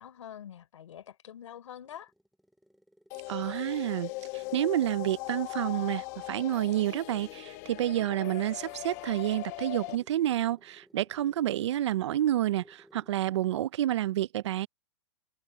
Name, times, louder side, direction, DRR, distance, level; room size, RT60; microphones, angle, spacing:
voice 1, 0.0-2.1, left 10 dB, 90° left, 5.2 m, -46 dB
sound 1, 1.6-13.3, equal, ahead, 3.8 m, -61 dB
sound 2, 3.1-9.9, left 21 dB, 30° left, 1.2 m, -39 dB
voice 2, 3.3-14.7, right 13 dB, 70° right, 0.5 m, -29 dB
supercardioid pair, 175°, 16 cm